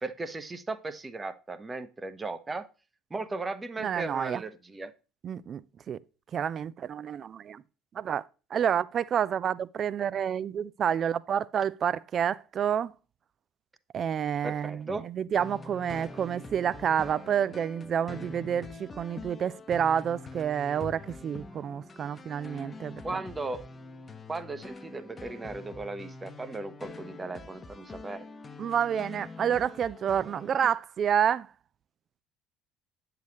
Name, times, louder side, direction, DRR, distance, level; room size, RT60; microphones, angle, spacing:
voice 1, 0.0-2.7 3.1-4.9 14.4-15.1 23.0-23.6 24.3-28.3, right 3 dB, 20° right, 0.8 m, -36 dB
voice 2, 3.8-4.4 5.2-6.0 6.3-7.6 8.0-8.2 8.5-12.9 13.9-23.0 28.6-31.5, right 8 dB, 40° right, 0.4 m, -29 dB
sound 1, 15.4-30.8, left 3 dB, 25° left, 0.8 m, -45 dB
9.1 x 6.8 x 3.1 m
figure-of-eight pair, 60°, 0 cm